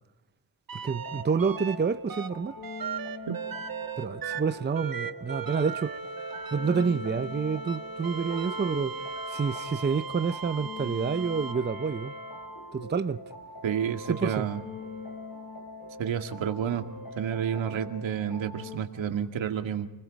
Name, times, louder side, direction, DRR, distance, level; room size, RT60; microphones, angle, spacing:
sound 1, 0.7-1.8 2.1-12.9 13.7-15.3 17.0-17.1, right 5 dB, 45° right, 1.5 m, -38 dB
voice 1, 0.8-2.6 4.0-5.9 6.5-9.0 9.3-12.1 12.7-13.2 14.2-14.5, right 5 dB, 25° right, 0.7 m, -28 dB
sound 2, 0.9-18.8, left 2 dB, 50° left, 5.0 m, -43 dB
voice 2, 13.6-14.6 16.0-16.9 17.1-19.9, right 8 dB, 75° right, 2.3 m, -30 dB
29.0 x 21.0 x 5.3 m
cardioid pair, 100°, 46 cm